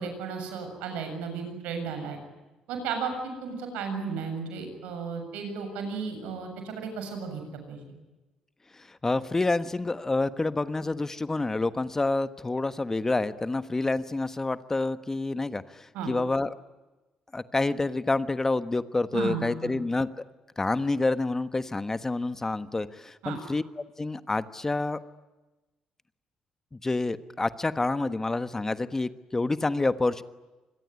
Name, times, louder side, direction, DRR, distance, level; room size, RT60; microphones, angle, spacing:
voice 1, 0.0-2.2 2.7-7.4 7.7-7.8 15.9-16.1 19.1-19.8 23.2-23.4, right 5 dB, 85° right, 6 dB, 7.4 m, -34 dB
voice 2, 8.9-16.5 17.3-20.1 20.6-25.0 26.8-30.2, left 2 dB, 20° left, 13 dB, 1.3 m, -28 dB
27.0 x 21.5 x 9.6 m, 1.1 s
supercardioid pair, 80°, 2 cm